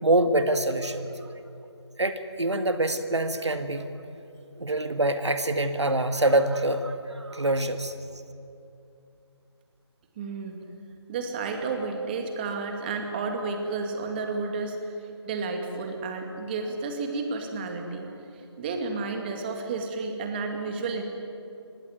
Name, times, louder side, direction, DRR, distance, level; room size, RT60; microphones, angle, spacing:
voice 1, 0.0-1.1 2.0-3.9 4.6-7.9, right 2 dB, 75° right, 8 dB, 1.9 m, -25 dB
voice 2, 10.2-10.6 11.1-14.9 15.3-21.0, right 4 dB, 20° right, 4 dB, 2.3 m, -31 dB
26.0 x 20.0 x 9.5 m, 2.7 s
figure-of-eight pair, 155°, 15 cm